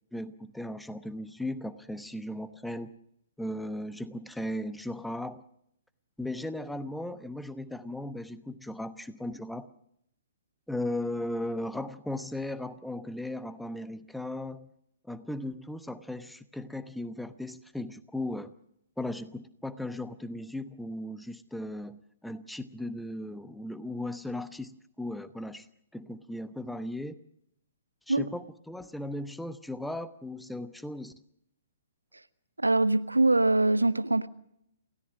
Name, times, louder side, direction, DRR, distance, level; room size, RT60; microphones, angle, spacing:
voice 1, 0.1-2.9 3.4-5.4 6.2-9.7 10.7-14.7 15.0-18.5 19.0-25.7 25.9-27.2 28.1-31.1, left 1 dB, ahead, 1.0 m, -37 dB
voice 2, 32.6-34.3, right 2 dB, 85° right, 1.1 m, -23 dB
28.5 x 16.5 x 6.2 m
figure-of-eight pair, 120°, 0 cm